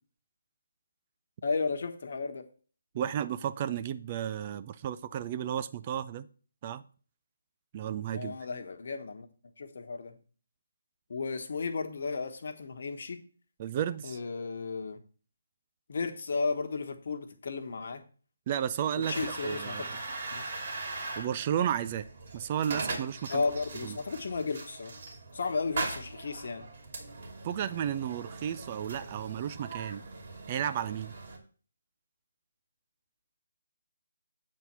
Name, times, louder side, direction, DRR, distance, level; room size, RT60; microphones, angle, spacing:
voice 1, 1.4-2.5 8.1-9.3 9.6-10.2 11.1-13.2 14.0-15.0 15.9-18.0 19.1-19.9 20.3-20.4 23.3-25.0 25.3-26.7, left 4 dB, 55° left, 1.2 m, -34 dB
voice 2, 2.9-6.3 6.6-6.8 7.7-8.4 13.6-14.2 18.5-20.0 21.2-22.0 22.3-23.4 23.8-24.0 27.4-30.0 30.5-31.1, right 9 dB, 30° right, 0.5 m, -33 dB
sound 1, 19.0-31.4, right 3 dB, 50° right, 2.7 m, -40 dB
8.0 x 4.3 x 6.1 m
figure-of-eight pair, 150°, 0 cm